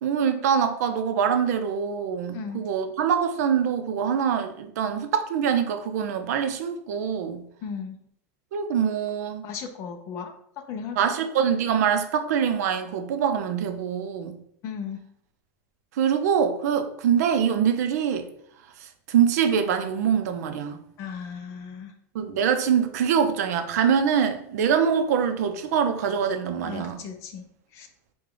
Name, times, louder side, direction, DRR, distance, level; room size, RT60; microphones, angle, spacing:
voice 1, 0.0-7.4 8.5-9.5 11.0-14.4 15.9-18.3 18.8-20.8 22.1-27.0, right 7 dB, 80° right, 0.6 m, -24 dB
voice 2, 2.3-2.7 7.6-8.0 9.4-11.1 14.6-15.0 21.0-22.0 26.6-27.4 27.7-27.9, left 6 dB, 35° left, 0.5 m, -36 dB
4.9 x 2.3 x 3.7 m
supercardioid pair, 175°, 9 cm